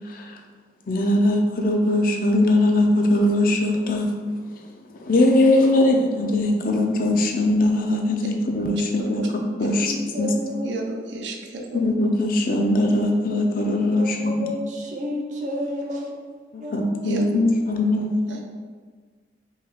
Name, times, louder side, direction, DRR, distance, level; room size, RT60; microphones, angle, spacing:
voice 1, 0.1-0.4 0.9-4.1 5.0-9.2 9.6-10.3 11.7-14.5 16.5-18.1, left 1 dB, 50° left, 2 dB, 0.5 m, -21 dB
voice 2, 9.7-10.7 13.9-17.3, equal, 45° right, 0 dB, 0.7 m, -32 dB
voice 3, 10.6-11.8 17.0-17.2 18.3-18.4, right 2 dB, 90° right, 1 dB, 0.7 m, -32 dB
5.4 x 2.3 x 3.5 m, 1.6 s
head